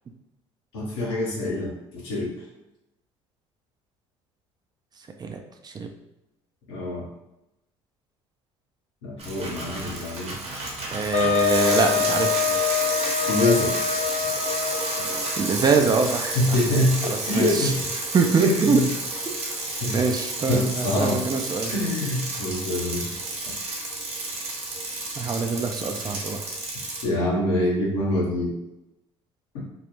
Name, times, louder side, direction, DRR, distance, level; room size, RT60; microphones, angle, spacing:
voice 1, 0.7-2.3 6.7-7.0 9.0-10.4 13.3-13.7 16.3-17.8 18.4-18.6 19.8-20.0 20.5-21.2 21.7-23.1 27.0-28.5 29.5-29.6, left 1 dB, 90° left, -4 dB, 0.9 m, -25 dB
voice 2, 5.2-5.9 10.9-12.6 14.7-14.9 15.4-16.7 17.0-17.7 18.1-18.8 19.3-19.4 19.9-21.7 25.2-26.5, right 4 dB, 30° right, 4 dB, 0.4 m, -24 dB
Bicycle, 9.2-27.0, right 2 dB, 50° right, 0.8 m, -31 dB
Wind instrument woodwind instrument, 11.1-15.5, left 9 dB, 55° left, 0.4 m, -25 dB
2.2 x 2.0 x 3.0 m, 0.90 s
hypercardioid pair, 70°, 14 cm